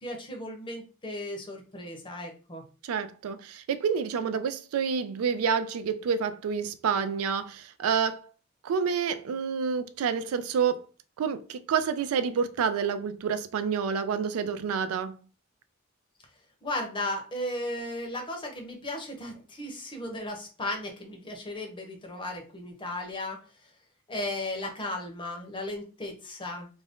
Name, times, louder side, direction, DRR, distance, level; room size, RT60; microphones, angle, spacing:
voice 1, 0.0-2.6 16.6-23.7 24.1-26.7, left 1 dB, 25° left, 0.6 m, -35 dB
voice 2, 2.8-8.3 8.6-10.9 11.2-15.1, right 6 dB, 85° right, 0.3 m, -28 dB
2.5 x 2.1 x 3.4 m
head